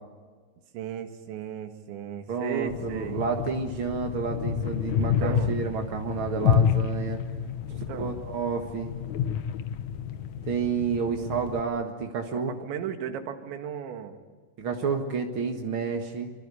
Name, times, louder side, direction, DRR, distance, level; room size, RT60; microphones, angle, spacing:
voice 1, 0.7-3.2 5.0-5.5 7.7-8.1 12.3-14.2, right 9 dB, 85° right, 6 dB, 4.1 m, -36 dB
voice 2, 2.3-7.2 7.9-8.9 10.4-12.5 14.6-16.3, right 5 dB, 65° right, 3 dB, 1.3 m, -30 dB
sound 1, 2.7-11.6, left 8 dB, 75° left, 1.7 m, -29 dB
26.5 x 25.0 x 8.4 m, 1.5 s
omnidirectional pair, 5.1 m